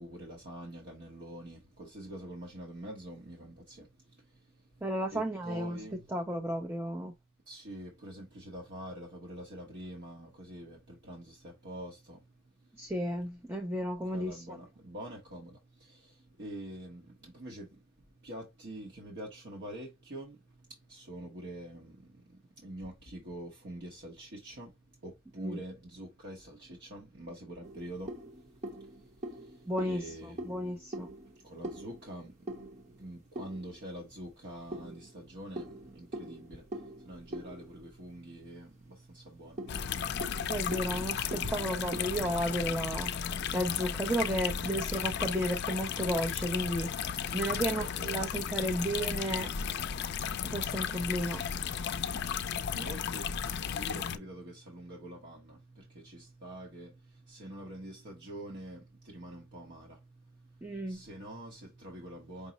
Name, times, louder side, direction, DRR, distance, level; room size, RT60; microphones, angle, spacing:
voice 1, 0.0-3.8 5.1-6.0 7.5-11.4 11.6-12.2 14.1-15.5 16.4-17.7 18.2-20.4 20.9-21.9 22.6-24.7 25.0-28.1 29.8-30.6 31.4-32.3 33.0-36.6 37.0-38.7 39.1-39.6 47.6-48.3 52.1-52.2 52.7-53.3 53.7-55.6 56.0-56.9 57.3-59.9 60.9-62.5, right 1 dB, 55° right, 1.0 m, -45 dB
voice 2, 4.8-5.8 6.1-7.1 12.8-14.6 25.4-25.6 29.7-31.1 40.5-49.5 50.4-51.5 60.6-61.0, right 1 dB, 10° right, 0.5 m, -33 dB
sound 1, 27.6-34.0 34.7-38.6 38.9-39.0 39.4-42.9, right 1 dB, 35° right, 0.9 m, -44 dB
sound 2, 39.7-54.2, left 8 dB, 55° left, 0.4 m, -34 dB
5.4 x 2.0 x 3.9 m
head